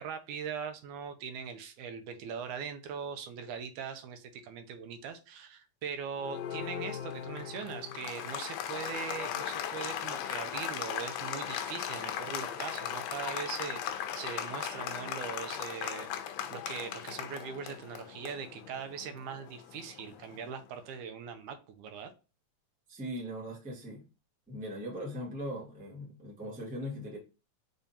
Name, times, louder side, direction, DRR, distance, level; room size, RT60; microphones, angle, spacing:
voice 1, 0.0-16.1 16.5-22.1, right 6 dB, 85° right, 8 dB, 2.1 m, -41 dB
Applause, 6.2-20.5, left 10 dB, 80° left, 1.5 m, -38 dB
voice 2, 22.9-24.0 24.5-27.2, equal, 5° right, -4 dB, 0.6 m, -39 dB
5.0 x 3.6 x 2.7 m, 0.31 s
omnidirectional pair, 3.5 m